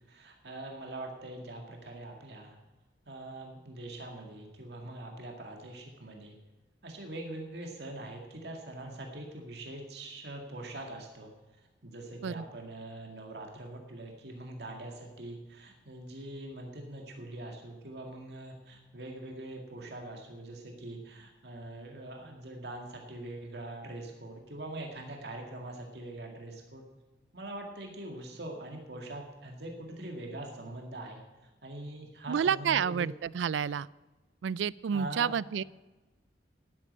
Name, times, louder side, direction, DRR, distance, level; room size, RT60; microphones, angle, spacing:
voice 1, 0.0-2.5 3.1-6.4 6.8-11.3 11.8-26.8 27.3-31.2 31.6-33.1 34.9-35.3, right 1 dB, 65° right, 1 dB, 2.1 m, -43 dB
voice 2, 32.3-33.9 34.4-35.6, right 7 dB, 90° right, 22 dB, 0.4 m, -29 dB
12.0 x 8.6 x 9.3 m, 1.2 s
head